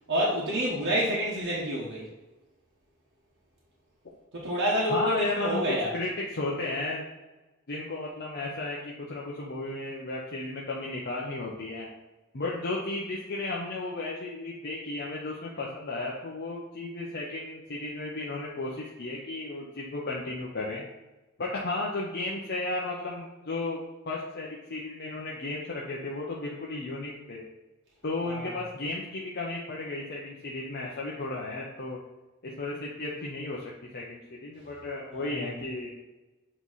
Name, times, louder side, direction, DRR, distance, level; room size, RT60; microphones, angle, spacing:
voice 1, 0.1-2.1 4.3-5.9 28.2-28.6 35.1-35.5, equal, 65° right, -5 dB, 1.2 m, -28 dB
voice 2, 4.9-7.0 7.7-11.9 12.3-20.9 21.4-23.8 24.1-27.4 28.0-32.0 32.4-35.9, left 2 dB, 50° left, -3 dB, 0.8 m, -34 dB
7.7 x 3.1 x 4.1 m, 1.1 s
head